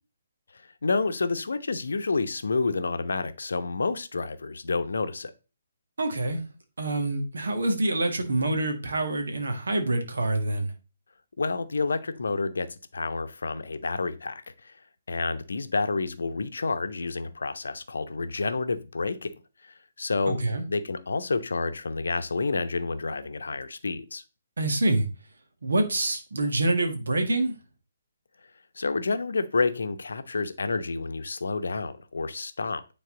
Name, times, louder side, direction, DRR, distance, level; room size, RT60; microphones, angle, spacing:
voice 1, 0.8-5.3 11.4-12.7 12.9-14.7 15.1-19.3 19.6-20.4 20.7-24.2 28.8-32.8, left 3 dB, 65° left, 0.8 m, -29 dB
voice 2, 6.0-6.4 6.8-10.7 20.3-20.6 24.6-25.1 25.6-27.5, right 2 dB, 65° right, 1.7 m, -26 dB
9.3 x 4.0 x 3.8 m
figure-of-eight pair, 135°, 0 cm